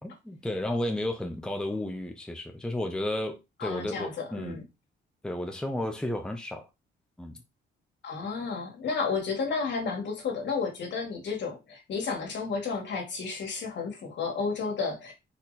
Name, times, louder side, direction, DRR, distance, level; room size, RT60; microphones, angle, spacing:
voice 1, 0.3-4.6 5.2-6.7 7.2-7.4, left 1 dB, 5° left, 0.8 m, -32 dB
voice 2, 3.6-4.6 8.0-15.1, left 5 dB, 65° left, 2.1 m, -32 dB
4.5 x 2.9 x 4.1 m
cardioid pair, 90°, 20 cm